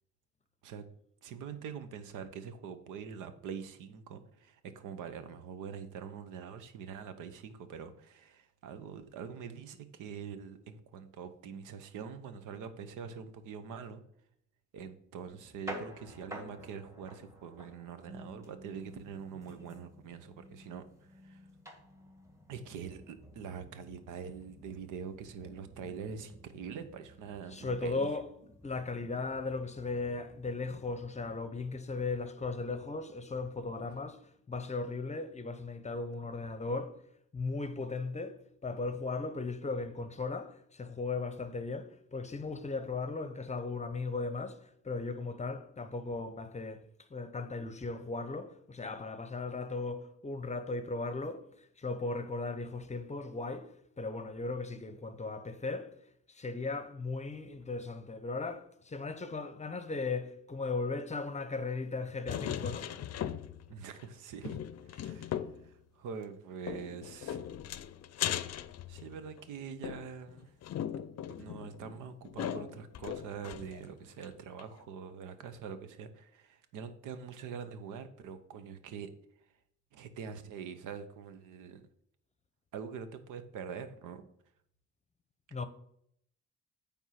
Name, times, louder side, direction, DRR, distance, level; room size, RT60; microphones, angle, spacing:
voice 1, 1.2-14.0 14.7-20.8 21.1-21.4 22.5-28.1 63.7-64.6 64.9-67.5 68.9-70.5 71.2-79.1 79.9-81.9 82.7-84.2, right 7 dB, 85° right, 0.9 m, -44 dB
sound 1, 15.3-31.4, equal, 10° right, 1.5 m, -51 dB
voice 2, 27.5-28.3 28.6-34.2 34.5-37.0 37.3-44.6 44.8-46.8 47.1-51.5 51.8-55.9 56.3-62.9 85.5-85.7, left 3 dB, 25° left, 0.7 m, -37 dB
sound 2, 62.3-63.7 64.0-64.1 64.4-65.7 66.7-69.4 69.8-73.9 74.2-74.3 74.6-74.7, left 10 dB, 55° left, 0.5 m, -39 dB
9.2 x 3.6 x 5.7 m
cardioid pair, 90°, 30 cm